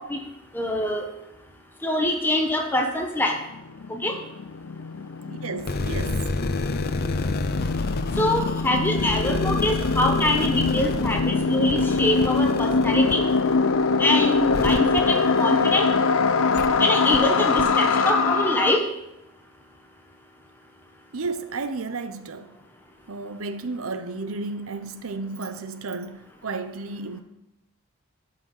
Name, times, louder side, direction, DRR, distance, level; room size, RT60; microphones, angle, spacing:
voice 1, 0.5-1.0 1.8-3.4 3.9-4.1 8.2-13.2 14.0-15.9 16.8-18.8, left 1 dB, 10° left, 1.2 m, -24 dB
sound 1, 3.3-3.4 3.5-18.8, left 4 dB, 80° left, 0.6 m, -23 dB
voice 2, 5.3-6.2 21.1-22.5 23.1-27.2, right 3 dB, 80° right, 0.7 m, -33 dB
sound 2, 5.6-16.0 16.5-16.7 17.1-17.2 17.6-17.7, left 2 dB, 45° left, 0.6 m, -30 dB
12.5 x 5.8 x 6.5 m
head